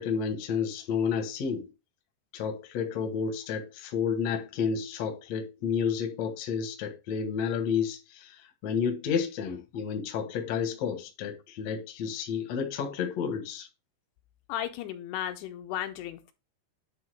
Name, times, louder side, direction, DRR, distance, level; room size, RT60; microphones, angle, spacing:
voice 1, 0.0-1.7 2.3-13.7, left 6 dB, 60° left, 1.8 m, -31 dB
voice 2, 14.5-16.3, left 11 dB, 80° left, 2.7 m, -35 dB
9.7 x 3.6 x 4.8 m
omnidirectional pair, 4.8 m